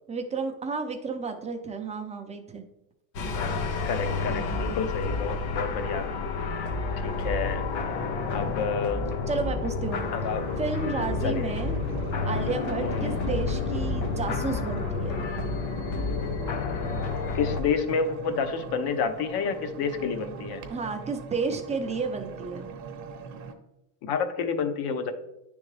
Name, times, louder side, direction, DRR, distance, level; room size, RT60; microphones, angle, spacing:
voice 1, 0.1-2.6 4.2-4.8 9.3-10.1 10.6-11.7 12.3-15.2 20.7-22.7, right 4 dB, 15° right, 5 dB, 0.5 m, -32 dB
sound 1, 3.1-17.6, left 4 dB, 85° left, 1.1 m, -30 dB
voice 2, 3.3-6.1 7.0-7.7 8.3-9.0 10.1-10.5 11.2-11.5 12.8-13.2 17.3-20.6 24.0-25.1, left 6 dB, 50° left, 9 dB, 0.9 m, -29 dB
sound 2, 9.8-23.5, right 5 dB, 35° right, 0.9 m, -41 dB
9.6 x 3.5 x 3.3 m, 0.88 s
supercardioid pair, 120°, 49 cm